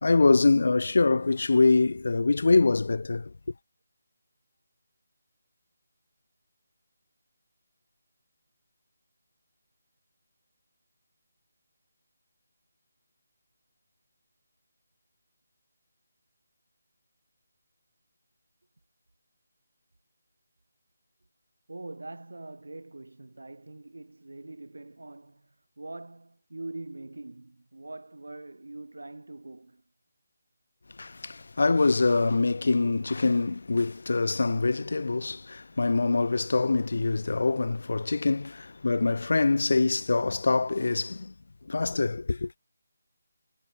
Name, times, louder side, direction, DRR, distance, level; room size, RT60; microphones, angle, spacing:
voice 1, 0.0-3.3 31.0-41.3 41.7-42.5, left 3 dB, 70° left, 0.6 m, -24 dB
voice 2, 21.7-29.8 36.4-36.6, right 2 dB, 85° right, 3.0 m, -43 dB
figure-of-eight pair, 165°, 0 cm